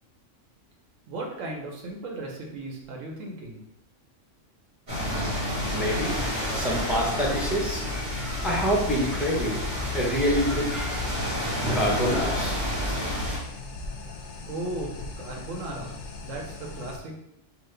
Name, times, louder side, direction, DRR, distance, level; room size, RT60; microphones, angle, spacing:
voice 1, 1.1-3.6 14.4-17.1, right 2 dB, 80° right, 0 dB, 1.2 m, -36 dB
sound 1, 4.9-13.4, left 1 dB, 50° right, 1.9 m, -30 dB
voice 2, 5.7-11.1 11.6-12.6, equal, ahead, -3 dB, 0.6 m, -27 dB
sound 2, 5.9-17.0, left 3 dB, 70° left, 0.8 m, -39 dB
4.0 x 2.6 x 3.3 m, 0.81 s
omnidirectional pair, 1.3 m